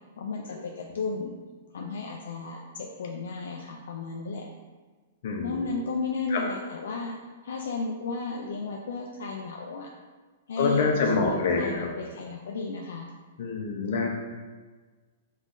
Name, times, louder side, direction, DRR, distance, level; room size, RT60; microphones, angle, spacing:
voice 1, 0.2-1.3 1.7-4.5 5.4-7.1 7.4-9.9 10.5-13.1, left 4 dB, 85° left, 0 dB, 0.4 m, -34 dB
voice 2, 5.2-5.6 6.3-6.4 10.6-11.9 13.4-14.1, left 4 dB, 65° left, 1 dB, 0.8 m, -26 dB
5.3 x 3.1 x 2.6 m, 1.4 s
hypercardioid pair, 150°, 0 cm